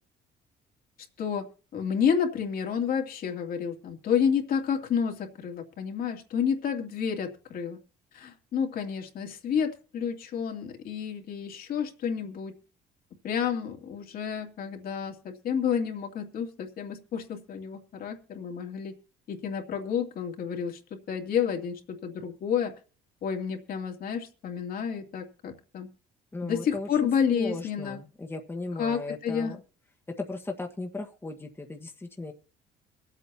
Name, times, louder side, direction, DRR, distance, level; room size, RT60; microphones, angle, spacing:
voice 1, 1.7-7.8 8.1-12.5 13.2-18.9 19.3-20.8 21.1-22.7 23.2-25.9 26.4-28.0 28.8-29.5, left 7 dB, 60° left, 3 dB, 2.6 m, -30 dB
voice 2, 26.3-29.6 30.1-32.3, left 3 dB, 15° left, 3 dB, 1.4 m, -37 dB
23.5 x 8.3 x 2.9 m, 0.37 s
cardioid pair, 110°, 17 cm